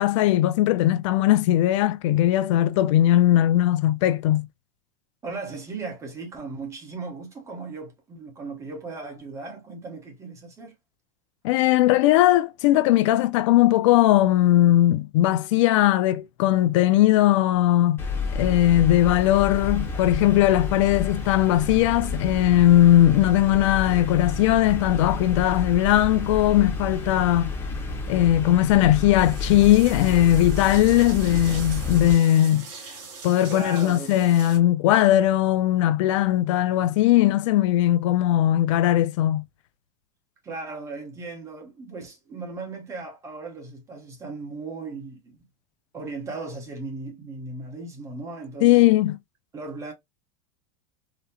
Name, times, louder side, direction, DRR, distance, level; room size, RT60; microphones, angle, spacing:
voice 1, 0.0-4.5 11.4-18.0 18.3-27.5 28.1-32.7 33.2-39.4 48.6-49.2, left 13 dB, 65° left, 0.4 m, -19 dB
voice 2, 5.2-10.7 33.5-34.2 40.4-45.4 45.9-48.8 49.5-49.9, right 3 dB, 15° right, 1.0 m, -37 dB
sound 1, 18.0-32.1, left 3 dB, 15° left, 0.9 m, -30 dB
sound 2, 29.2-34.6, right 5 dB, 55° right, 1.8 m, -42 dB
3.9 x 2.1 x 2.7 m
supercardioid pair, 150°, 17 cm